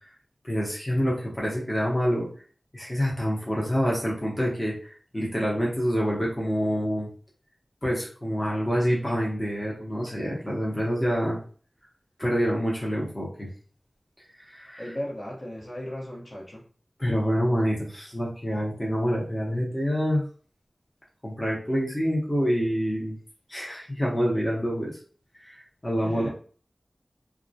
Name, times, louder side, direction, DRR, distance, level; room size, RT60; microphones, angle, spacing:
voice 1, 0.4-2.3 2.7-7.1 7.8-11.4 12.2-13.5 14.4-14.9 17.0-20.2 21.2-23.2 23.5-25.0 25.4-25.5 25.8-26.3, equal, 20° left, -5 dB, 0.7 m, -27 dB
voice 2, 14.8-16.6 26.0-26.3, equal, 55° left, -4 dB, 0.9 m, -36 dB
2.3 x 2.1 x 2.6 m, 0.43 s
wide cardioid pair, 75°, 0 cm